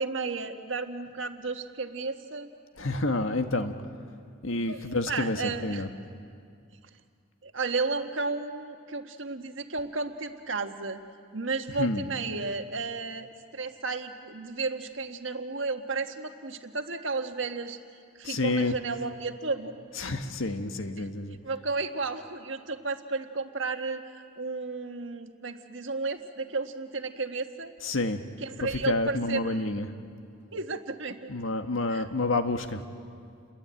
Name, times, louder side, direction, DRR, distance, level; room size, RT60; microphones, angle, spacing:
voice 1, 0.0-2.5 4.7-4.8 5.1-5.8 7.4-11.0 11.3-13.3 13.5-17.8 18.2-19.7 21.0-21.1 21.4-24.0 24.4-27.7 28.4-29.5 30.5-31.3 31.9-32.0, right 3 dB, 70° right, 6 dB, 1.6 m, -33 dB
voice 2, 2.8-3.7 4.4-5.9 11.7-12.1 18.2-18.8 19.9-21.4 27.8-28.2 28.6-29.9 31.1-32.8, left 2 dB, 80° left, 7 dB, 1.6 m, -29 dB
29.5 x 22.5 x 9.0 m, 2.3 s
head